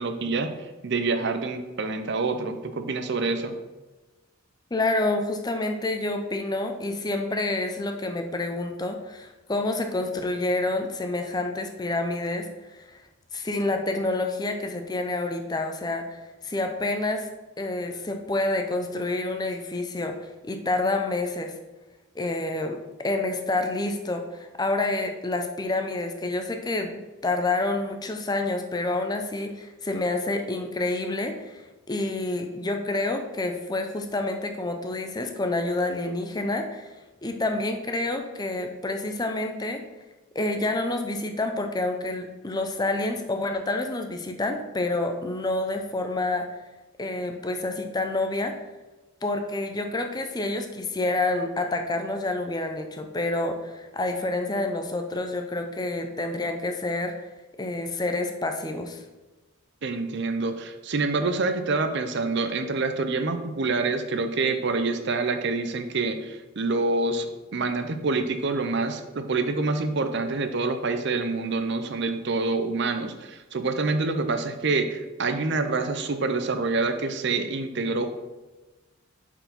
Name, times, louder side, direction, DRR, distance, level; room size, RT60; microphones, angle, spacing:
voice 1, 0.0-3.6 59.8-67.3 67.5-78.1, right 3 dB, 55° right, 8 dB, 0.6 m, -27 dB
voice 2, 4.7-12.8 13.3-17.3 17.6-21.6 22.2-27.0 27.2-36.9 37.2-39.8 40.3-46.5 47.0-48.6 49.2-57.1 57.6-59.0, left 2 dB, 20° left, 5 dB, 0.5 m, -28 dB
7.8 x 4.6 x 4.1 m, 1.1 s
head